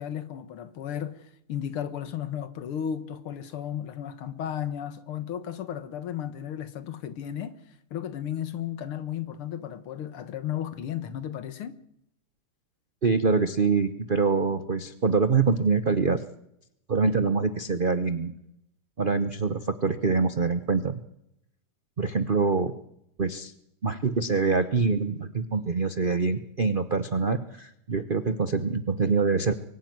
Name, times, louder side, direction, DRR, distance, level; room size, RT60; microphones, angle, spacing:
voice 1, 0.0-7.6 7.9-11.8, left 9 dB, 80° left, 2.2 m, -34 dB
voice 2, 13.0-16.2 16.9-18.3 19.0-21.0 22.0-22.7 23.2-23.5 23.8-29.5, right 4 dB, 70° right, 0.5 m, -25 dB
23.5 x 12.0 x 9.4 m
omnidirectional pair, 2.4 m